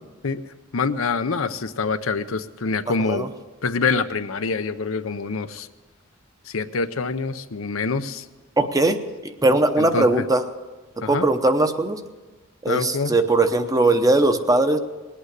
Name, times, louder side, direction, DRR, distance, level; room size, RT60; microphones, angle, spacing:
voice 1, 0.7-3.3 3.6-5.7 6.5-8.2 9.8-10.3 11.0-11.3 12.7-13.2, left 4 dB, 85° left, 10 dB, 0.7 m, -25 dB
voice 2, 8.6-9.0 9.4-10.4 11.1-12.0 12.6-14.8, right 2 dB, 20° right, 8 dB, 0.8 m, -19 dB
20.0 x 8.7 x 8.2 m, 1.2 s
head